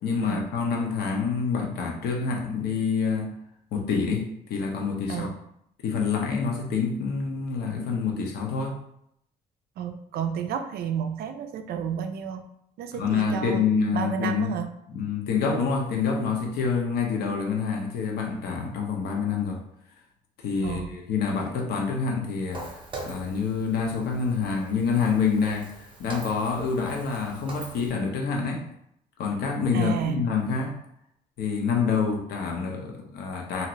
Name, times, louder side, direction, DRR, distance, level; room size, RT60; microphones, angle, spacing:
voice 1, 0.0-3.3 3.7-5.3 5.8-8.8 13.0-14.5 14.9-19.6 20.4-28.7 29.2-30.8 31.4-33.7, left 5 dB, 70° left, 1 dB, 0.8 m, -27 dB
voice 2, 9.8-12.5 12.8-13.6 13.9-14.7 20.6-20.9 29.7-30.3, right 8 dB, 65° right, 8 dB, 0.4 m, -31 dB
Walk footsteps, 22.5-27.9, right 2 dB, 30° right, 0.7 m, -42 dB
2.8 x 2.5 x 3.0 m, 0.74 s
cardioid pair, 110°, 17 cm